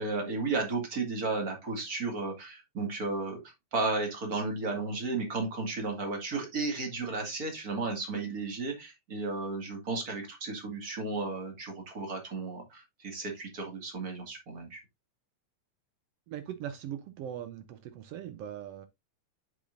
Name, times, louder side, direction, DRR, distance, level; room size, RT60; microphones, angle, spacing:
voice 1, 0.0-14.8, right 3 dB, 35° right, 2.2 m, -34 dB
voice 2, 16.3-18.9, right 10 dB, 80° right, 1.4 m, -40 dB
7.9 x 6.2 x 2.5 m
omnidirectional pair, 3.3 m